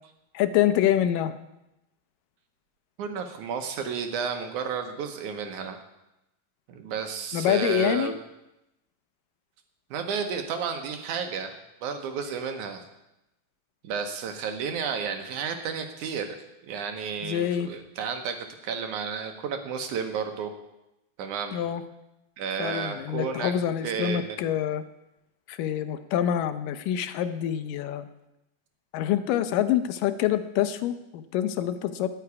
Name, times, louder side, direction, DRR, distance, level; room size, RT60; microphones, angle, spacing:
voice 1, 0.3-1.4 7.3-8.1 17.2-17.7 21.5-21.8 22.6-24.8 25.5-28.1 28.9-32.1, left 11 dB, 80° left, 11 dB, 2.2 m, -26 dB
voice 2, 3.0-5.8 6.7-8.2 9.9-11.6 11.8-12.8 13.8-16.3 16.6-18.4 18.6-20.5 21.2-21.6 22.4-23.5 23.8-24.4, right 6 dB, 70° right, 6 dB, 2.1 m, -32 dB
13.5 x 5.8 x 9.5 m, 0.91 s
omnidirectional pair, 4.1 m